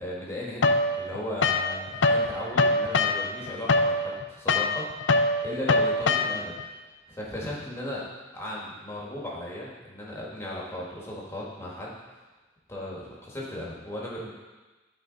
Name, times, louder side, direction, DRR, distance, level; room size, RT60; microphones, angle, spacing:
voice 1, 0.0-4.9 5.4-6.6 7.1-8.1 8.3-11.9 12.7-14.3, left 1 dB, 15° left, -4 dB, 1.6 m, -36 dB
sound 1, 0.6-2.3 2.5-6.6, left 2 dB, 70° left, 0.5 m, -23 dB
12.0 x 4.6 x 4.0 m, 1.2 s
head